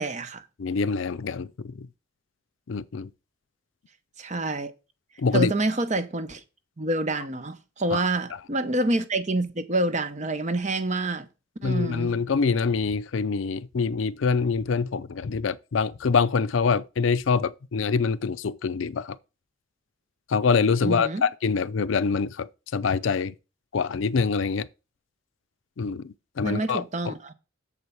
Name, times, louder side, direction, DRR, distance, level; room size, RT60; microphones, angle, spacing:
voice 1, 0.0-0.5 4.2-4.7 5.3-6.4 6.8-11.3 11.6-12.1 20.8-21.3 26.4-27.3, right 2 dB, 35° right, 0.8 m, -27 dB
voice 2, 0.6-1.9 2.7-3.1 5.2-5.5 7.9-8.0 11.6-19.2 20.3-23.3 23.7-24.7 25.8-27.1, left 5 dB, 80° left, 0.5 m, -25 dB
7.2 x 4.5 x 6.9 m
head